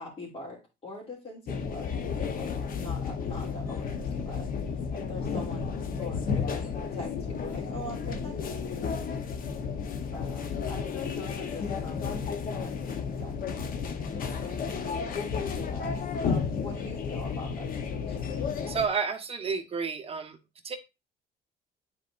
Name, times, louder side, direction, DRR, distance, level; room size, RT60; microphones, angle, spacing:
voice 1, 0.0-4.5 4.9-9.0 10.0-13.8 14.1-18.3, left 2 dB, 35° left, -7 dB, 2.8 m, -43 dB
sound 1, 1.5-18.9, left 6 dB, 55° left, 1.0 m, -32 dB
voice 2, 18.7-20.4 20.6-20.8, right 5 dB, 35° right, 4 dB, 1.1 m, -30 dB
10.0 x 4.2 x 2.5 m, 0.25 s
cardioid pair, 110°, 17 cm